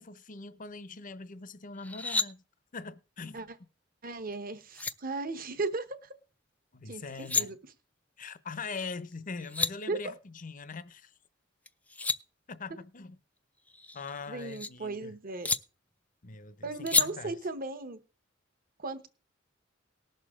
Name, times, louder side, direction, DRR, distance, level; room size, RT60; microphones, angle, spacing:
voice 1, 0.0-2.4 2.7-3.5 6.7-7.6 8.2-11.1 12.5-13.2 13.9-15.2 16.2-17.4, left 4 dB, 45° left, 0.7 m, -42 dB
sound 1, 1.8-2.3 4.3-4.4 4.7-4.9 7.0-7.4 9.1-9.2 9.4-9.7 11.7-12.2 13.7-14.7 15.4-15.6 16.9-17.1, left 3 dB, 10° left, 0.4 m, -30 dB
voice 2, 4.0-6.1 6.9-7.6 9.9-10.1 14.3-15.5 16.6-18.0 18.8-19.1, right 3 dB, 50° right, 1.1 m, -36 dB
19.0 x 6.5 x 3.6 m
head